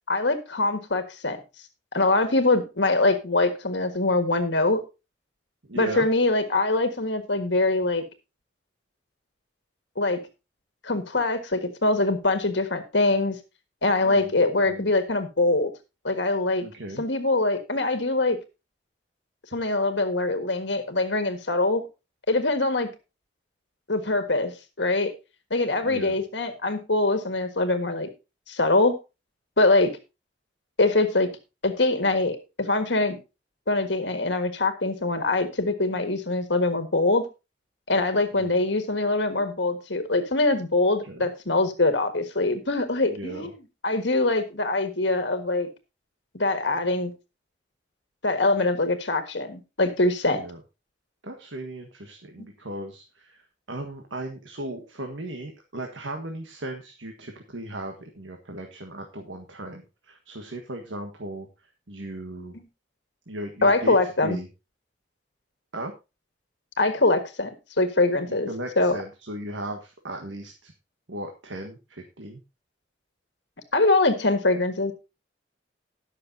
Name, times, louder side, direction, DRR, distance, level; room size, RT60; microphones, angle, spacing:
voice 1, 0.1-1.4 1.9-4.8 5.7-8.0 10.0-10.2 10.8-13.4 13.8-15.7 16.0-16.6 17.0-18.4 19.5-21.8 22.3-22.9 23.9-25.1 25.5-28.1 28.5-28.9 29.6-30.0 30.8-31.3 31.6-33.2 33.7-37.2 37.9-43.6 43.8-45.7 46.3-47.1 48.2-50.4 63.6-64.4 66.8-67.5 67.8-68.5 68.8-69.0 73.7-74.9, left 2 dB, 70° left, 7 dB, 1.6 m, -23 dB
voice 2, 5.6-6.1 14.0-14.9 16.6-17.0 25.8-26.2 38.3-38.6 41.0-41.3 43.0-43.5 50.3-50.6 51.2-61.5 61.9-62.5 63.3-64.5 65.7-65.9 68.3-70.7 71.1-72.4, right 1 dB, 85° right, 3 dB, 1.6 m, -37 dB
20.0 x 6.6 x 2.7 m, 0.27 s
head